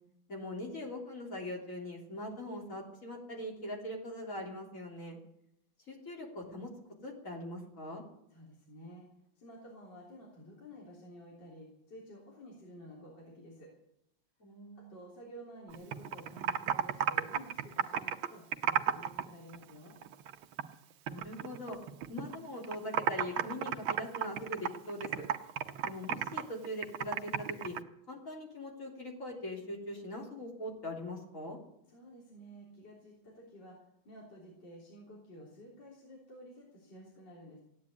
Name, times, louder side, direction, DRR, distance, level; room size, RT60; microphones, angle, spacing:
voice 1, 0.3-5.2 5.9-6.7 7.0-8.0 14.4-14.9 21.1-21.8 22.1-25.3 25.8-27.8 28.1-31.6, left 1 dB, 40° left, -1 dB, 3.8 m, -41 dB
voice 2, 8.3-9.1 9.4-13.7 14.8-20.0 31.9-33.8 34.1-37.6, equal, 60° left, -4 dB, 4.2 m, -52 dB
Computer keyboard, 15.7-19.2 19.5-20.7 21.1-22.4 22.6-27.8, right 9 dB, 90° right, 1.7 m, -33 dB
16.0 x 9.7 x 8.5 m, 0.80 s
omnidirectional pair, 2.2 m